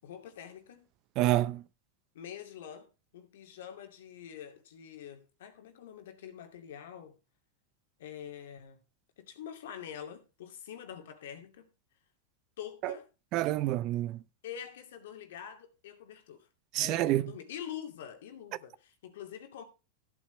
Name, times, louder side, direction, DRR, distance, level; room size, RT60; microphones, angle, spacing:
voice 1, 0.0-0.9 2.1-7.1 8.0-8.8 9.2-11.7 12.6-13.1 14.4-16.5 16.8-19.6, left 9 dB, 75° left, 2.4 m, -45 dB
voice 2, 1.2-1.6 12.8-12.9 13.3-14.2 16.7-17.3, right 15 dB, 45° right, 0.6 m, -28 dB
14.0 x 8.6 x 3.3 m
hypercardioid pair, 110°, 0 cm